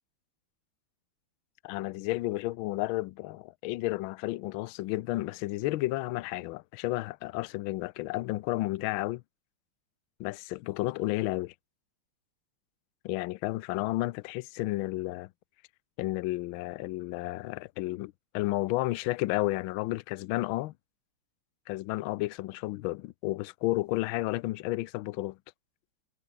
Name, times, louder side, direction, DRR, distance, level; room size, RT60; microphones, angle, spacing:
voice 1, 1.6-9.2 10.2-11.5 13.0-15.3 16.0-20.7 21.7-25.4, left 18 dB, 75° left, 1.3 m, -32 dB
omnidirectional pair, 2.3 m